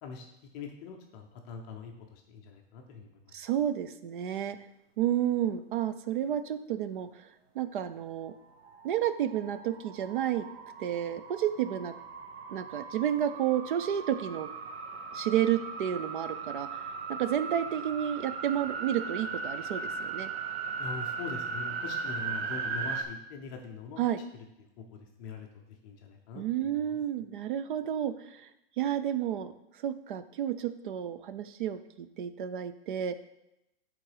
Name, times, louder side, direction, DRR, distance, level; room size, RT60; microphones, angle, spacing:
voice 1, 0.5-3.4 20.8-24.0 24.8-27.0, left 5 dB, 20° left, 3 dB, 0.5 m, -43 dB
voice 2, 3.3-4.6 5.0-7.3 7.5-8.3 8.8-10.4 10.8-12.0 12.5-14.5 15.1-16.7 17.1-20.3 24.0-24.2 26.3-28.5 28.8-29.5 29.8-33.1, right 10 dB, 55° right, 12 dB, 0.5 m, -31 dB
sound 1, 8.6-23.0, right 5 dB, 80° right, 1.1 m, -38 dB
8.9 x 3.8 x 4.9 m, 0.87 s
hypercardioid pair, 165°, 31 cm